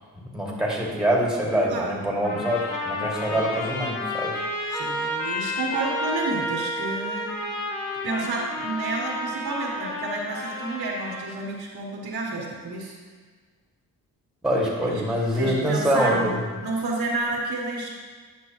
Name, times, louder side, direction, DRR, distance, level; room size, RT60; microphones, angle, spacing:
voice 1, 0.3-4.4 14.4-16.4, equal, ahead, -3 dB, 2.2 m, -24 dB
voice 2, 1.7-2.0 3.3-3.5 4.7-7.6 8.0-13.0 14.8-16.3 16.6-17.9, right 3 dB, 65° right, -2 dB, 1.7 m, -30 dB
Trumpet, 2.2-11.3, left 1 dB, 75° left, 1.5 m, -31 dB
9.7 x 6.0 x 3.0 m, 1.5 s
supercardioid pair, 60°, 42 cm